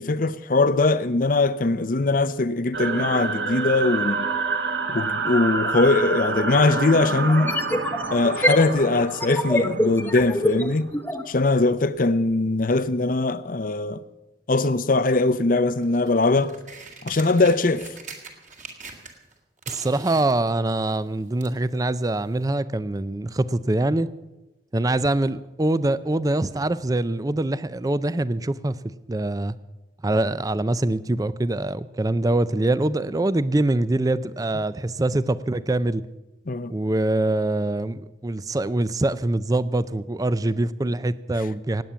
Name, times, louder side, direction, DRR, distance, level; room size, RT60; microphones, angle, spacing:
voice 1, 0.0-4.3 4.9-7.5 8.1-10.9 11.3-14.0 14.5-16.5 17.0-17.9 36.5-36.7, left 3 dB, 50° left, 0.7 m, -21 dB
sound 1, 2.7-10.7, right 3 dB, 75° right, 1.4 m, -28 dB
sound 2, 5.9-6.0 7.3-11.3, left 1 dB, 10° left, 1.0 m, -25 dB
sound 3, 15.8-19.3 19.6-21.6 22.4-22.5, right 5 dB, 45° right, 2.1 m, -42 dB
voice 2, 19.7-24.1 24.7-28.8 29.1-29.6 30.0-36.0 36.7-41.8, right 2 dB, 20° right, 0.5 m, -24 dB
18.5 x 8.9 x 6.9 m
head